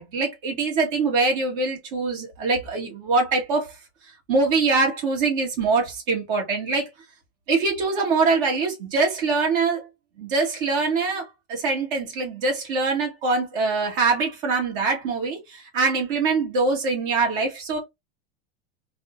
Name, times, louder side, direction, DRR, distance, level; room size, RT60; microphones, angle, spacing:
voice 1, 0.0-3.7 4.3-6.9 7.5-9.9 10.2-11.2 11.5-17.8, right 4 dB, 60° right, 1.5 m, -23 dB
3.5 x 2.2 x 2.4 m
supercardioid pair, 165°, 31 cm